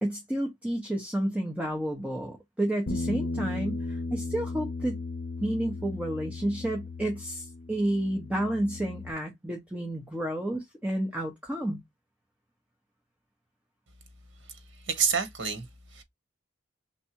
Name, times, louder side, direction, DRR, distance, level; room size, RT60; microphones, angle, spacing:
voice 1, 0.0-5.0 5.4-11.8, right 1 dB, 5° right, 1.0 m, -31 dB
Bass guitar, 2.9-9.1, left 3 dB, 60° left, 0.6 m, -36 dB
voice 2, 14.4-16.0, right 6 dB, 80° right, 1.2 m, -30 dB
4.5 x 3.4 x 2.9 m
head